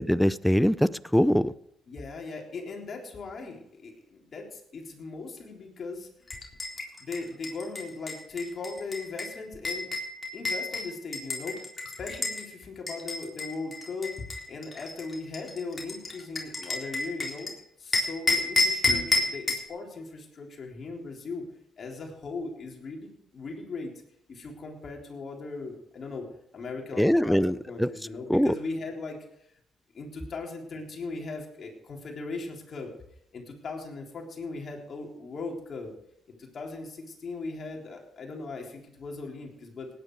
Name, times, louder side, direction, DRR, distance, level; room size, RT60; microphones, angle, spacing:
voice 1, 0.0-1.5 27.0-27.9 28.3-28.5, equal, 5° left, 0.5 m, -23 dB
voice 2, 1.9-6.1 7.0-9.9 10.3-14.1 14.5-17.5 17.8-21.4 21.8-23.9 24.3-26.3 26.5-29.2 29.9-32.9 33.3-35.9 36.4-39.9, left 3 dB, 50° left, 3.7 m, -38 dB
sound 1, 6.3-12.4 12.9-17.5 17.9-19.7, left 3 dB, 30° left, 3.8 m, -30 dB
18.0 x 10.0 x 4.8 m
cardioid pair, 90°, 0 cm